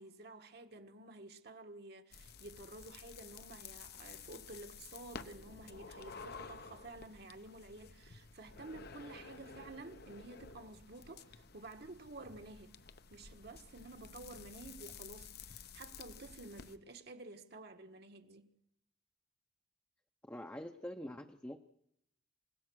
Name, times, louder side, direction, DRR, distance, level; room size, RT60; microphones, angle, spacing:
voice 1, 0.0-12.8 13.1-18.5, right 2 dB, 55° right, 1.5 m, -51 dB
sound 1, 2.1-16.8, left 5 dB, 55° left, 0.9 m, -52 dB
voice 2, 20.2-21.6, left 1 dB, 10° left, 0.8 m, -45 dB
28.5 x 16.5 x 6.3 m
head